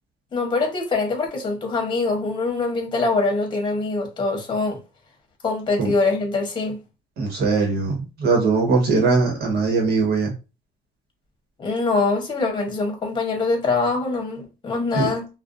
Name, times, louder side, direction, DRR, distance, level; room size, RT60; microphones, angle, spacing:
voice 1, 0.3-4.8 5.4-6.8 11.6-15.3, left 3 dB, 30° left, 0.9 m, -23 dB
voice 2, 7.2-10.3 14.9-15.1, right 4 dB, 70° right, 1.2 m, -20 dB
2.4 x 2.2 x 2.5 m
cardioid pair, 110°, 17 cm